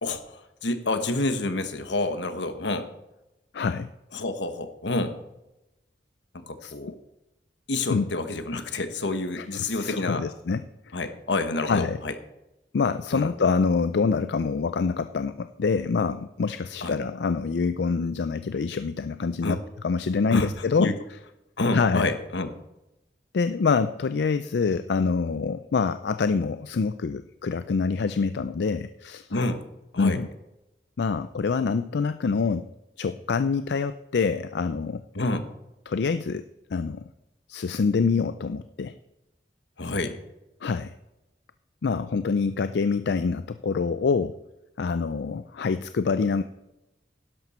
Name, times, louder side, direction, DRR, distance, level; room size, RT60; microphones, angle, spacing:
voice 1, 0.0-2.9 4.1-5.2 6.3-7.0 7.7-10.2 10.9-12.1 13.1-13.3 16.8-16.9 19.4-19.6 20.3-20.5 20.8-21.0 21.6-22.5 29.3-29.6 29.9-30.2 35.1-35.5 39.8-40.2, left 2 dB, 85° left, 9 dB, 1.3 m, -28 dB
voice 2, 3.5-3.9 6.6-6.7 7.9-8.1 9.4-11.0 11.7-12.0 12.7-20.9 21.7-22.1 23.3-29.3 30.0-30.3 31.0-32.7 33.0-35.0 35.9-36.5 36.7-37.1 37.5-39.0 40.6-40.9 41.8-44.4 44.8-46.4, left 5 dB, 70° left, 11 dB, 0.4 m, -26 dB
12.0 x 11.0 x 4.3 m, 0.93 s
head